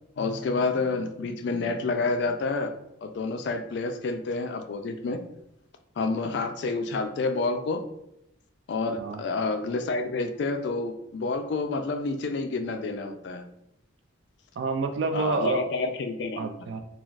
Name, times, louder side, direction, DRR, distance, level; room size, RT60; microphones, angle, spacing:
voice 1, 0.2-2.7 3.0-5.2 6.0-7.8 8.7-13.4 15.1-16.5, left 3 dB, 60° left, 6 dB, 0.3 m, -29 dB
voice 2, 14.6-15.6 16.4-16.8, right 3 dB, 60° right, 6 dB, 0.3 m, -28 dB
3.2 x 2.3 x 2.4 m, 0.80 s
head